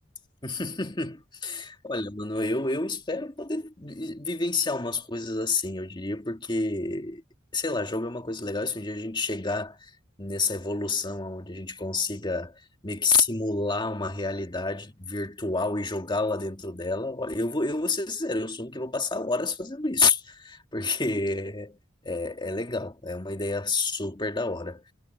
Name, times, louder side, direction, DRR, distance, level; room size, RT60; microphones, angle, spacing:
voice 1, 0.4-7.2 7.5-9.9 10.2-21.8 22.0-24.9, left 3 dB, 25° left, 1.9 m, -29 dB
head